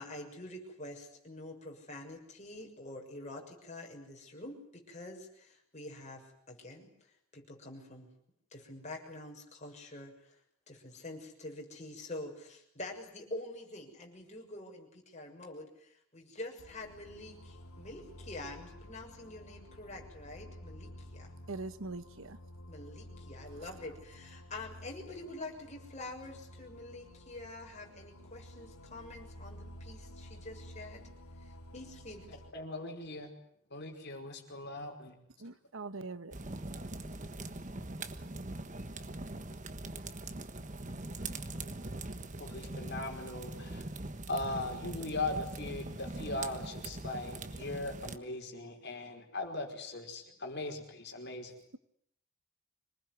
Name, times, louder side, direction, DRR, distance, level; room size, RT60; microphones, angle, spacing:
voice 1, 0.0-6.9 7.3-8.1 8.5-10.4 10.7-21.3 22.7-31.1 31.4-32.2, left 2 dB, 30° left, 6.7 m, -46 dB
sound 1, 16.6-32.5, equal, 85° left, 2.5 m, -52 dB
voice 2, 21.5-22.4 35.4-36.4, right 3 dB, 65° right, 1.1 m, -42 dB
voice 3, 32.5-33.3 33.7-35.2 42.4-43.8 44.3-51.5, left 2 dB, 50° left, 5.2 m, -39 dB
sound 2, 36.3-48.2, right 2 dB, 35° right, 1.4 m, -42 dB
26.0 x 19.5 x 9.7 m
head